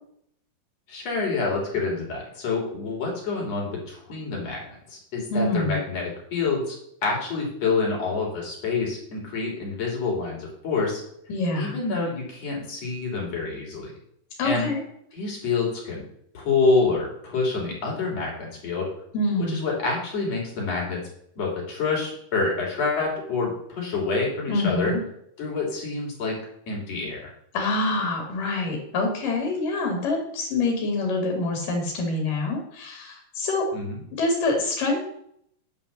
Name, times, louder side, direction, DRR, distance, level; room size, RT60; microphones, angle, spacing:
voice 1, 0.9-6.8 7.0-11.0 11.6-13.9 14.4-14.7 15.1-16.0 16.3-18.9 19.5-21.0 21.4-24.9 25.4-26.4 26.7-27.3 33.7-33.9, left 4 dB, 50° left, -2 dB, 4.2 m, -27 dB
voice 2, 5.3-5.8 11.3-11.7 14.4-14.8 19.1-19.6 24.5-25.0 27.5-33.7 34.1-35.0, left 2 dB, 80° left, 1 dB, 3.8 m, -26 dB
9.5 x 5.6 x 7.1 m, 0.69 s
omnidirectional pair, 3.8 m